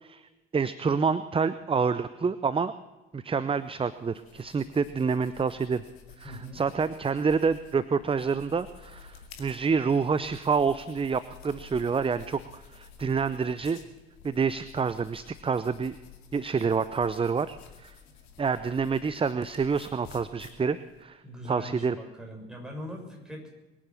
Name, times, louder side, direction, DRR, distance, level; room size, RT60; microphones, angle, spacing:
voice 1, 0.0-2.7 3.1-5.8 6.2-13.8 14.2-16.0 16.3-17.9 18.4-21.2 21.5-22.0, right 5 dB, 15° right, 14 dB, 0.7 m, -28 dB
sound 1, 3.5-21.0, left 7 dB, 60° left, 2.5 m, -52 dB
voice 2, 6.2-6.6 21.2-23.6, equal, ahead, 0 dB, 6.4 m, -41 dB
23.0 x 10.0 x 5.9 m, 1.1 s
figure-of-eight pair, 60°, 31 cm